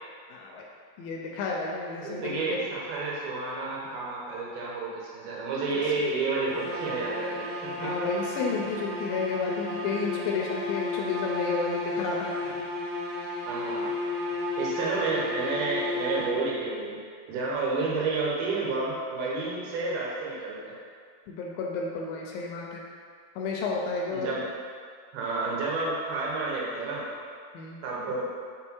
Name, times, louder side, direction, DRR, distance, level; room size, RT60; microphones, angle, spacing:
voice 1, 0.3-0.7 1.0-2.7 7.8-12.3 21.3-22.8 23.4-24.3 27.5-27.8, left 4 dB, 80° left, -1 dB, 2.2 m, -31 dB
voice 2, 2.0-7.9 13.5-13.9 14.6-17.0 17.3-20.7 24.1-24.4 25.1-27.1 27.8-28.3, right 3 dB, 85° right, -5 dB, 3.1 m, -30 dB
sound 1, 6.4-16.7, left 2 dB, 55° right, 2.1 m, -33 dB
6.4 x 3.9 x 4.5 m, 2.1 s
omnidirectional pair, 4.4 m